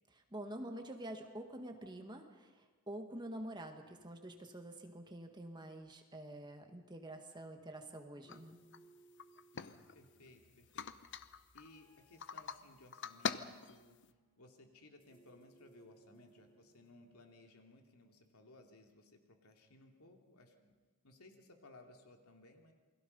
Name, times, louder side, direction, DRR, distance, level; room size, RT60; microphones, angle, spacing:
voice 1, 0.3-8.6, right 1 dB, 20° right, 4 dB, 1.8 m, -47 dB
sound 1, 8.2-17.3, right 3 dB, 25° left, 3.2 m, -68 dB
sound 2, 8.3-8.4 8.7-8.8 9.2-10.3 10.7-11.7 12.2-12.6 12.9-14.1, left 6 dB, 55° left, 0.8 m, -43 dB
voice 2, 9.5-14.0 14.4-20.7 21.0-22.7, left 2 dB, 80° left, 3 dB, 2.8 m, -61 dB
28.5 x 22.0 x 5.5 m, 1.3 s
head